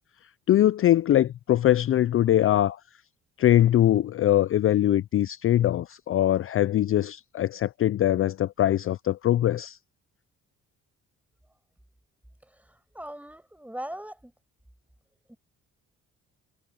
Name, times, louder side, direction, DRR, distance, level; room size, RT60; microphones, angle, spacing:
voice 1, 0.5-2.8 3.4-9.8, left 12 dB, 45° left, 0.4 m, -22 dB
voice 2, 12.5-14.3 15.3-15.4, right 1 dB, 5° right, 6.1 m, -40 dB
cardioid pair, 90°, 30 cm